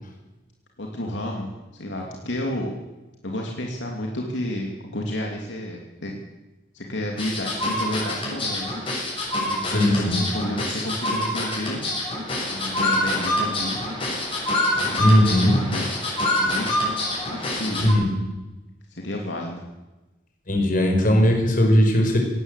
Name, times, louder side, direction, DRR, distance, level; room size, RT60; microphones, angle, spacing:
voice 1, 0.8-2.7 3.2-6.2 6.7-8.8 9.4-11.8 12.5-13.8 14.7-15.8 16.4-16.8 17.3-17.8 18.9-19.6, left 1 dB, 75° left, 0 dB, 2.8 m, -31 dB
sound 1, 7.2-17.9, left 1 dB, 30° left, 7.0 m, -26 dB
voice 2, 9.7-10.2 15.0-15.6 17.8-18.0 20.5-22.2, equal, 45° left, 3 dB, 5.2 m, -18 dB
18.0 x 17.5 x 8.3 m, 1.1 s
head